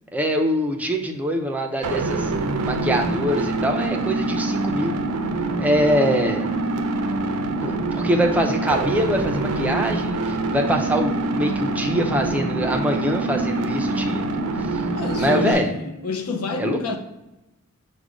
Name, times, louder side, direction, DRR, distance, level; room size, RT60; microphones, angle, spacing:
voice 1, 0.1-2.3 2.6-5.0 5.6-6.5 7.6-14.8 15.2-15.8 16.6-17.0, equal, 5° right, 0.4 m, -24 dB
sound 1, 1.8-15.5, right 2 dB, 80° right, 0.5 m, -25 dB
voice 2, 14.9-17.0, left 3 dB, 75° left, 0.6 m, -27 dB
5.0 x 2.2 x 4.8 m
head